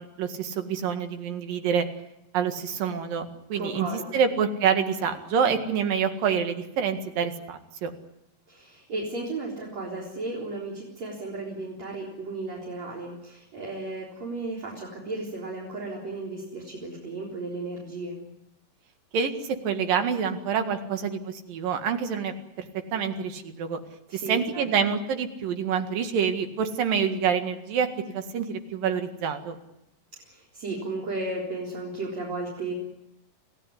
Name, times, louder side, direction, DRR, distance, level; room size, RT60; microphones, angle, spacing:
voice 1, 0.0-1.9 2.3-3.9 4.1-7.9 19.1-22.7 22.9-23.8 24.1-29.6, right 7 dB, 75° right, 7 dB, 3.6 m, -27 dB
voice 2, 3.6-4.2 8.5-18.2 24.1-24.9 30.2-32.7, right 2 dB, 50° right, -3 dB, 5.1 m, -34 dB
27.5 x 16.0 x 9.9 m, 0.88 s
omnidirectional pair, 4.1 m